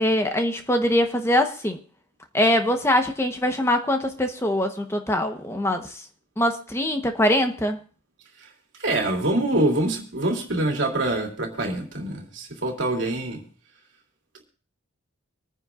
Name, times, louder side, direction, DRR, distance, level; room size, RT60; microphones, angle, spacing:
voice 1, 0.0-1.8 2.3-6.0 6.4-7.8, left 1 dB, 15° left, 1.0 m, -23 dB
voice 2, 8.8-13.4, right 1 dB, 60° right, 3.0 m, -25 dB
26.0 x 9.7 x 2.5 m
head